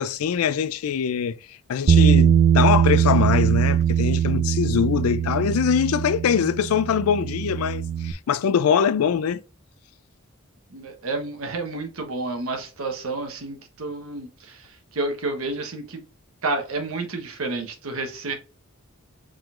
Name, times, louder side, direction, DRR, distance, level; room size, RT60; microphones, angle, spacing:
voice 1, 0.0-1.4 1.7-9.4, left 7 dB, 85° left, 0.4 m, -23 dB
Bass guitar, 1.9-8.1, right 8 dB, 50° right, 0.3 m, -21 dB
voice 2, 10.7-16.0 16.4-18.3, right 3 dB, 75° right, 1.1 m, -30 dB
4.8 x 3.7 x 2.5 m
head